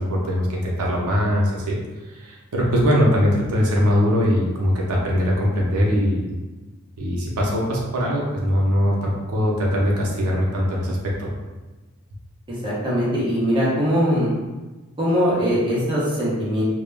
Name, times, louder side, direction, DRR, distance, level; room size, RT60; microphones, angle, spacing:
voice 1, 0.0-1.8 2.1-6.3 7.0-11.3, equal, 90° right, -3 dB, 0.6 m, -21 dB
voice 2, 12.5-14.3 15.0-16.6, equal, 20° right, -8 dB, 0.7 m, -21 dB
2.2 x 2.0 x 3.2 m, 1.2 s
head